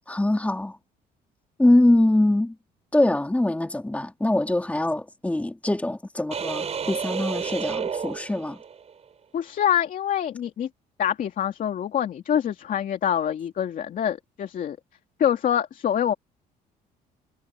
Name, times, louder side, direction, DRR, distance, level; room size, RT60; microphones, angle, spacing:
voice 1, 0.1-0.8 1.6-2.6 2.9-8.6, left 1 dB, 10° left, 2.9 m, -23 dB
sound 1, 6.3-8.9, right 6 dB, 40° right, 5.4 m, -31 dB
voice 2, 9.3-10.7 11.0-14.8 15.2-16.1, left 9 dB, 50° left, 2.7 m, -25 dB
cardioid pair, 110°, 17 cm